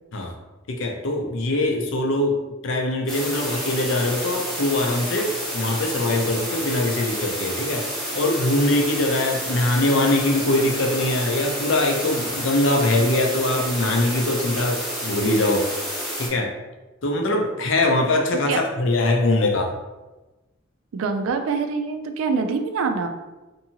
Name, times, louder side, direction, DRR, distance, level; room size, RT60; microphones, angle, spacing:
voice 1, 0.7-2.4 2.6-7.9 8.1-15.6 16.2-16.5 17.0-19.7, left 2 dB, 65° left, 2 dB, 0.5 m, -22 dB
sound 1, 3.1-16.3, equal, ahead, 0.6 m, -30 dB
voice 2, 20.9-23.1, right 4 dB, 85° right, 6 dB, 0.4 m, -24 dB
2.7 x 2.6 x 2.7 m, 1.1 s
head